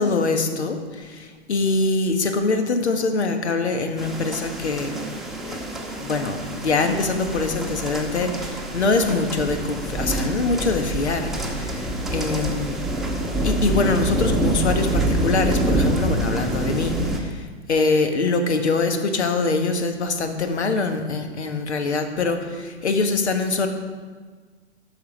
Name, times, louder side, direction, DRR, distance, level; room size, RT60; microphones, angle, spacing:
voice 1, 0.0-5.2 5.5-5.6 6.0-12.8 13.4-23.7, left 3 dB, 75° left, 6 dB, 1.4 m, -24 dB
sound 1, 4.0-17.2, right 1 dB, ahead, 1.0 m, -26 dB
10.5 x 6.4 x 5.1 m, 1.5 s
figure-of-eight pair, 115°, 34 cm